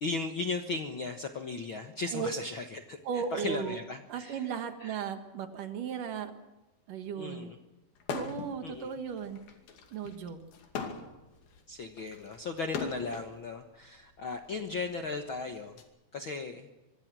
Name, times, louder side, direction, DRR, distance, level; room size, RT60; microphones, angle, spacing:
voice 1, 0.0-4.5 4.8-5.0 7.2-7.6 8.6-8.9 11.7-15.8 16.1-16.7, left 3 dB, 60° left, 6 dB, 1.4 m, -37 dB
voice 2, 3.0-3.8 4.1-6.3 6.9-7.5 8.1-9.4 9.9-10.4, right 7 dB, 70° right, 8 dB, 3.2 m, -36 dB
sound 1, 8.0-8.6 8.9-13.3 14.2-15.8, left 5 dB, 85° left, 4.3 m, -40 dB
25.0 x 23.0 x 6.2 m, 1.1 s
omnidirectional pair, 4.1 m